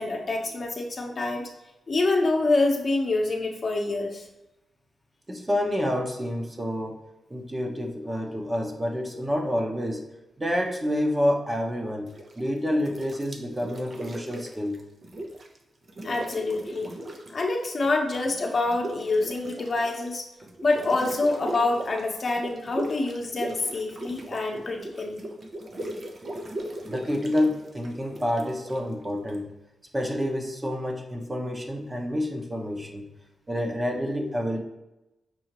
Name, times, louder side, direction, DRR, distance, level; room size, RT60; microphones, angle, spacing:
voice 1, 0.0-1.5 1.9-4.2 16.0-16.9 17.3-20.2 20.6-25.2, left 2 dB, 50° left, 2 dB, 0.8 m, -26 dB
voice 2, 5.3-7.0 7.3-10.0 10.4-12.1 12.4-14.8 26.9-29.5 29.9-33.0 33.5-34.6, equal, 20° right, 2 dB, 0.9 m, -28 dB
sound 1, 12.1-12.5 12.8-15.6 15.8-17.6 17.8-29.4, right 1 dB, 50° right, 0.7 m, -39 dB
6.1 x 2.8 x 2.9 m, 0.95 s
cardioid pair, 65°, 0 cm